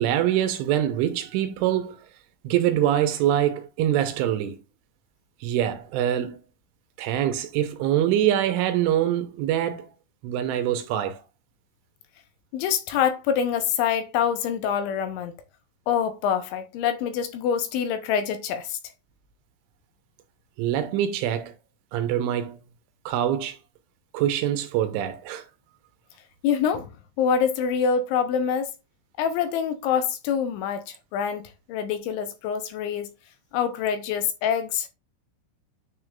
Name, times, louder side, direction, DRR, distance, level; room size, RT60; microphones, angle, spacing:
voice 1, 0.0-2.0 2.4-4.6 5.4-6.4 7.0-9.9 10.2-11.2 20.6-21.5 21.9-22.6 23.1-23.6 24.1-25.5, right 11 dB, 80° right, 3.1 m, -24 dB
voice 2, 12.5-15.3 15.9-18.8 26.4-26.9 27.2-28.7 29.2-33.1 33.5-34.9, left 7 dB, 85° left, 2.9 m, -25 dB
9.6 x 6.3 x 2.4 m
omnidirectional pair, 5.8 m